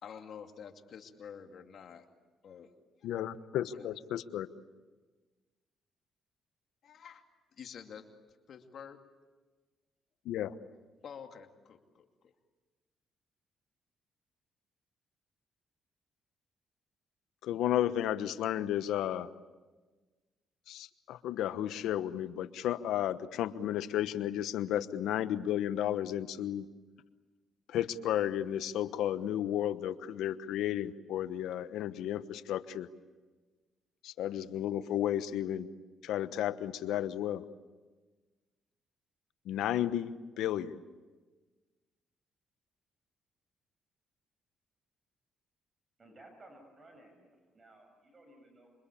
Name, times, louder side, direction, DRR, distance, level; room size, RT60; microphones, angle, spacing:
voice 1, 0.0-2.1 2.4-2.7 3.0-3.1 3.7-3.9 6.8-7.2 7.6-9.0 11.0-12.3, left 7 dB, 60° left, 5 dB, 2.4 m, -49 dB
voice 2, 3.0-4.5 10.2-10.5 17.4-19.3 20.7-26.7 27.7-32.9 34.0-35.7 36.0-37.4 39.4-40.8, left 11 dB, 85° left, 12 dB, 1.1 m, -33 dB
voice 3, 46.0-48.7, right 1 dB, 35° right, 5 dB, 6.5 m, -57 dB
27.0 x 25.0 x 8.6 m, 1.3 s
cardioid pair, 90°, 0 cm